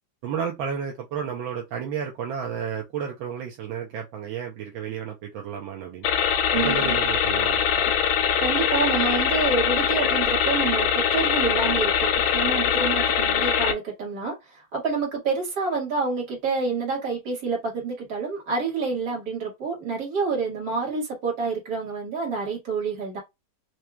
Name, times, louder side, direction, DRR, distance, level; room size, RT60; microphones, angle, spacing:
voice 1, 0.2-6.1 6.5-7.8, right 7 dB, 80° right, 1.5 m, -32 dB
sound 1, 6.0-13.7, left 8 dB, 90° left, 1.6 m, -22 dB
voice 2, 6.5-7.0 8.4-23.2, right 4 dB, 50° right, 2.4 m, -28 dB
4.7 x 2.8 x 2.3 m
omnidirectional pair, 2.2 m